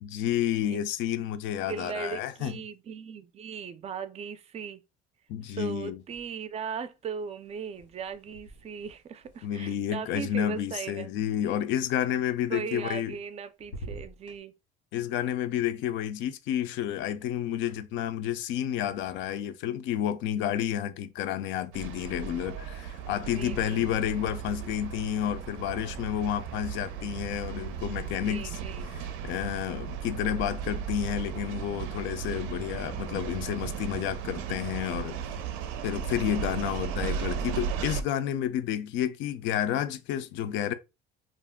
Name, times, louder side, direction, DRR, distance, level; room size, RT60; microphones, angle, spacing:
voice 1, 0.0-2.6 5.3-6.0 9.4-13.2 14.9-28.6 28.9-35.2 35.8-40.7, left 10 dB, 70° left, 0.4 m, -30 dB
voice 2, 1.7-4.8 5.5-11.1 12.5-14.5 23.1-23.9 28.1-28.9, right 6 dB, 30° right, 0.4 m, -38 dB
sound 1, 6.0-6.7 7.0-11.1 12.7-13.3 13.6-14.4, right 1 dB, 90° left, 1.3 m, -48 dB
sound 2, 21.7-38.0, right 8 dB, 85° right, 0.5 m, -36 dB
2.5 x 2.1 x 3.5 m
cardioid pair, 115°, 20 cm